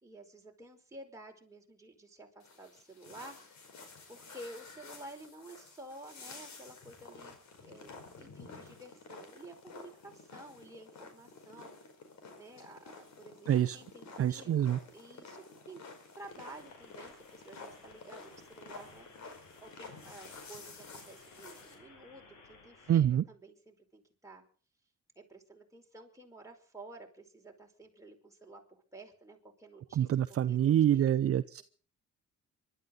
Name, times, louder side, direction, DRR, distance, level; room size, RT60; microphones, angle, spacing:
voice 1, 0.0-3.4 4.1-11.7 12.4-14.6 14.9-15.8 16.1-19.1 19.6-24.4 25.1-30.1 30.5-31.1, right 2 dB, 10° right, 1 dB, 5.0 m, -52 dB
sound 1, 2.4-21.7, left 4 dB, 65° left, 5.2 m, -51 dB
voice 2, 13.5-13.8 14.2-14.8 22.9-23.2 29.9-31.6, right 10 dB, 50° right, 12 dB, 0.7 m, -26 dB
sound 2, 16.3-23.0, left 3 dB, 85° left, 7.4 m, -59 dB
25.0 x 12.5 x 4.0 m, 0.40 s
cardioid pair, 90°, 30 cm